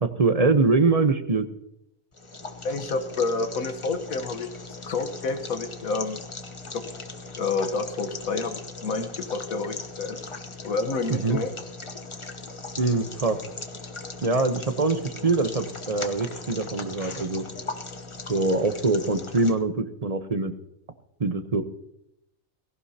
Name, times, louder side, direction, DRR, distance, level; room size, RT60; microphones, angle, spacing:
voice 1, 0.0-1.5 11.1-11.4 12.8-13.4 14.2-17.4 18.3-20.5 21.2-21.6, right 3 dB, 30° right, 9 dB, 0.9 m, -23 dB
sound 1, 2.1-19.5, left 3 dB, 25° left, 0.9 m, -39 dB
voice 2, 2.6-4.5 4.8-6.2 6.7-6.9 7.4-10.2 10.6-11.5, left 4 dB, 85° left, 7 dB, 1.6 m, -29 dB
18.0 x 17.0 x 2.8 m, 0.79 s
omnidirectional pair, 1.4 m